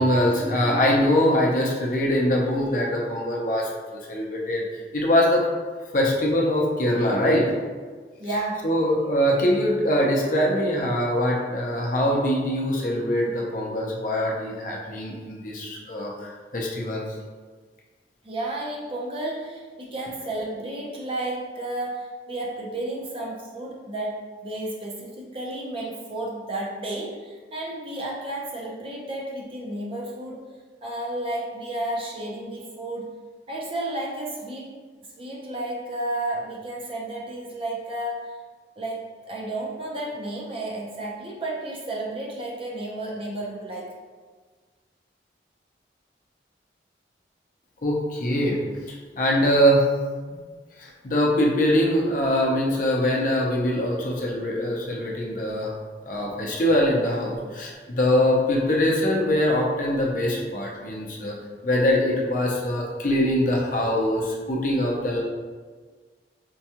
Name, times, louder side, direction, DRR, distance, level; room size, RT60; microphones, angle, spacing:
voice 1, 0.0-4.6 4.9-5.4 5.9-7.5 8.6-17.0 47.8-48.6 48.8-49.9 50.8-55.7 56.0-61.4 61.6-65.2, equal, 45° left, -2 dB, 0.5 m, -23 dB
voice 2, 8.2-8.7 18.2-30.4 30.8-33.1 33.5-34.7 35.2-38.4 38.8-43.9, right 1 dB, 30° right, -3 dB, 0.5 m, -32 dB
4.5 x 2.2 x 2.8 m, 1.5 s
head